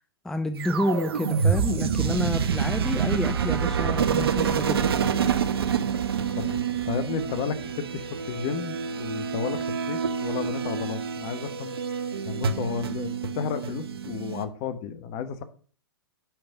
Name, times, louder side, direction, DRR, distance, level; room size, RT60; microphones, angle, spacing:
voice 1, 0.2-4.8, left 1 dB, 5° left, 8 dB, 0.5 m, -29 dB
sound 1, 0.6-14.4, right 7 dB, 70° right, 0.8 m, -27 dB
voice 2, 6.3-11.7 12.3-15.4, left 7 dB, 40° left, 11 dB, 1.0 m, -33 dB
5.9 x 5.2 x 5.7 m, 0.43 s
hypercardioid pair, 115°, 13 cm